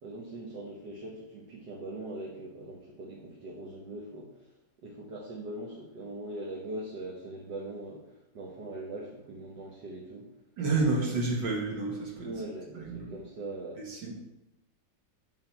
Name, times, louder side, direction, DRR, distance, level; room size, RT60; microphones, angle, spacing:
voice 1, 0.0-10.3 12.2-13.8, right 2 dB, 70° right, -3 dB, 1.8 m, -41 dB
voice 2, 10.6-12.3 12.7-13.1 13.9-14.1, right 3 dB, 90° right, -3 dB, 2.7 m, -29 dB
11.5 x 4.1 x 4.5 m, 0.90 s
omnidirectional pair, 1.9 m